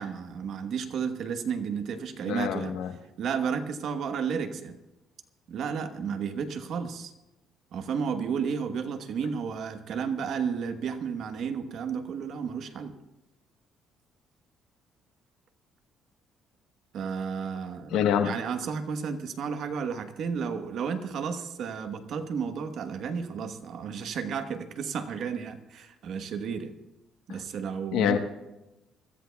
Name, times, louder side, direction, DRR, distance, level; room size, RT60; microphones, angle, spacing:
voice 1, 0.0-2.7 3.2-4.8 5.5-7.1 7.7-12.9 16.9-17.9 18.2-26.7 27.3-28.2, right 6 dB, 60° right, 7 dB, 1.1 m, -32 dB
voice 2, 2.3-2.9 17.9-18.3 27.9-28.2, left 9 dB, 90° left, 7 dB, 1.1 m, -25 dB
25.0 x 13.5 x 2.3 m, 0.98 s
cardioid pair, 140°, 0 cm